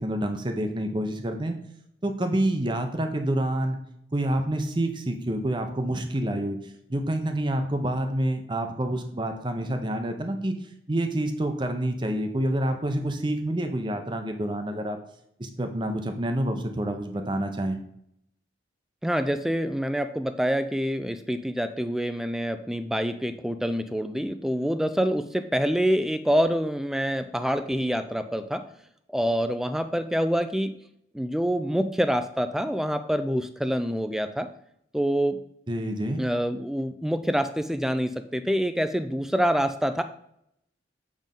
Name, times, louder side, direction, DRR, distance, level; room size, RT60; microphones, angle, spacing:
voice 1, 0.0-1.5 2.0-3.8 4.1-10.5 10.9-15.0 15.4-17.8 35.7-36.2, right 1 dB, 25° right, 6 dB, 0.7 m, -28 dB
voice 2, 19.0-28.6 29.1-30.7 31.1-34.5 34.9-35.4 36.2-40.0, equal, ahead, 10 dB, 0.3 m, -26 dB
7.4 x 3.5 x 5.3 m, 0.74 s
head